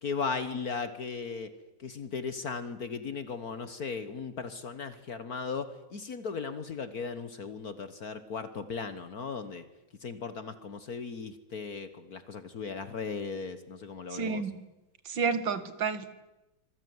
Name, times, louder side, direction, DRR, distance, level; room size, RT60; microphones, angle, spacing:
voice 1, 0.0-1.5 1.8-9.6 10.0-14.5, left 5 dB, 50° left, 12 dB, 1.7 m, -37 dB
voice 2, 14.1-14.5 15.1-16.1, right 5 dB, 70° right, 13 dB, 2.3 m, -30 dB
26.0 x 19.0 x 9.6 m, 0.99 s
omnidirectional pair, 2.1 m